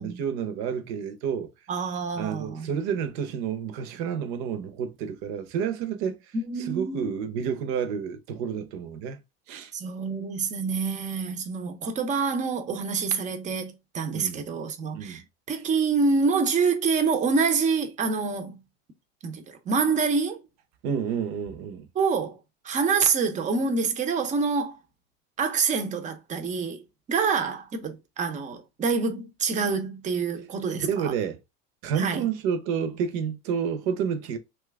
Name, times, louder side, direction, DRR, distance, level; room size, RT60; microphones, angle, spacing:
voice 1, 0.0-1.5 2.2-9.2 9.5-9.7 14.1-14.4 14.9-15.2 20.8-21.9 30.7-31.4 31.8-34.4, right 7 dB, 60° right, 0.8 m, -30 dB
voice 2, 1.7-2.7 6.3-7.1 9.7-18.6 19.2-20.4 21.9-22.4 22.6-24.8 25.4-26.8 27.1-31.1 32.0-32.3, right 5 dB, 25° right, 0.6 m, -26 dB
2.9 x 2.3 x 3.4 m
supercardioid pair, 120°, 32 cm